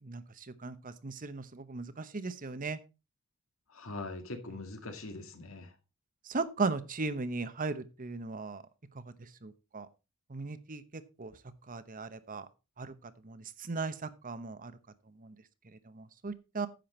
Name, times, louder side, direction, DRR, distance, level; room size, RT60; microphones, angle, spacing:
voice 1, 0.0-2.8 6.2-8.6 8.9-9.9 10.3-11.4 11.7-12.5 12.8-14.7 15.1-15.4 15.7-16.7, right 3 dB, 40° right, 13 dB, 0.9 m, -38 dB
voice 2, 3.7-5.7, left 2 dB, 70° left, 7 dB, 2.0 m, -42 dB
10.5 x 7.8 x 4.3 m, 0.29 s
head